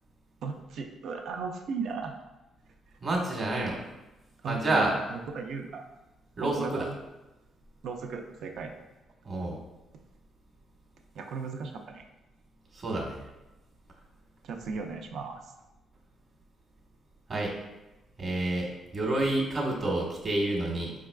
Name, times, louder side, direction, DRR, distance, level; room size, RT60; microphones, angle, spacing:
voice 1, 0.4-2.2 4.4-5.8 6.4-7.0 7.8-8.7 11.1-12.0 14.4-15.5, right 5 dB, 70° right, 4 dB, 0.5 m, -36 dB
voice 2, 3.0-3.8 4.5-4.9 6.4-6.9 9.2-9.6 12.7-13.2 17.3-17.5 18.2-20.9, right 2 dB, 40° right, -1 dB, 1.1 m, -29 dB
4.6 x 3.6 x 2.2 m, 1.0 s
cardioid pair, 90°, 0 cm